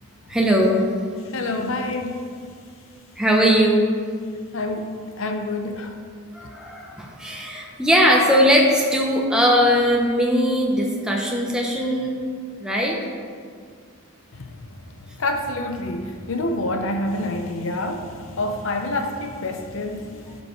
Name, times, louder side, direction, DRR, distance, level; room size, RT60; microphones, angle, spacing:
voice 1, 0.3-0.8 3.2-3.8 6.3-12.1 12.6-13.0, equal, 5° right, -2 dB, 0.7 m, -19 dB
voice 2, 1.3-2.2 4.5-4.9 5.2-5.9 14.3-14.6 15.2-20.4, left 2 dB, 60° left, 5 dB, 0.7 m, -27 dB
12.5 x 5.3 x 3.2 m, 2.1 s
head